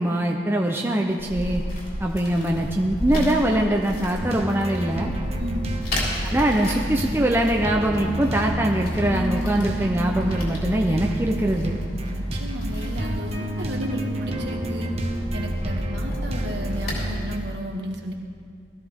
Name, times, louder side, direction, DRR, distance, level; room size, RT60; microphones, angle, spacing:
voice 1, 0.0-1.6 2.0-5.1 6.2-11.8, right 1 dB, 10° right, 0 dB, 0.7 m, -23 dB
sound 1, 1.2-17.1, left 1 dB, 50° left, 3.5 m, -34 dB
sound 2, 4.2-17.4, equal, 30° right, 1.1 m, -29 dB
voice 2, 5.4-5.7 12.1-14.9 15.3-18.1, equal, 55° right, 1 dB, 1.7 m, -33 dB
20.0 x 14.0 x 3.6 m, 2.3 s
head